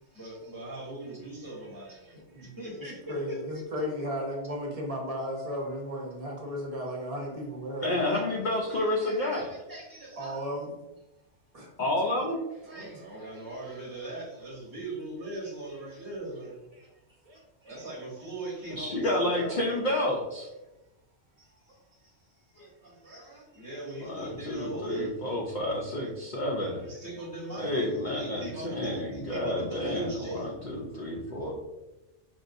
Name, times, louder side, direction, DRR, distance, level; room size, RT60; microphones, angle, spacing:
voice 1, 0.0-3.4 8.1-8.2 8.7-10.5 12.6-16.6 17.3-19.8 21.4-25.3 26.8-30.4, right 1 dB, 20° right, -4 dB, 1.0 m, -40 dB
voice 2, 2.3-8.0 10.2-10.8 11.5-11.7 16.7-16.9 17.2-17.4 17.6-17.8 21.7-21.8 27.2-27.3, equal, 35° right, -1 dB, 0.8 m, -35 dB
voice 3, 7.8-9.5 11.8-12.4 18.7-20.5 24.0-26.8 27.6-31.5, left 1 dB, 50° left, -2 dB, 0.6 m, -30 dB
5.3 x 2.6 x 2.5 m, 0.99 s
omnidirectional pair, 1.2 m